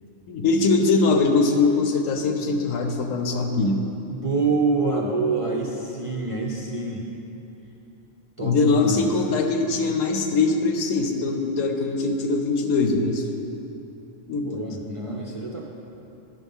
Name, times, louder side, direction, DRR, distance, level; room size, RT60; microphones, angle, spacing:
voice 1, 0.3-3.8 8.4-13.3 14.3-14.6, left 3 dB, 75° left, 4 dB, 1.1 m, -22 dB
voice 2, 4.1-7.0 8.4-9.0 14.4-15.6, right 3 dB, 35° right, -3 dB, 0.5 m, -26 dB
11.0 x 5.4 x 5.4 m, 3.0 s
omnidirectional pair, 1.4 m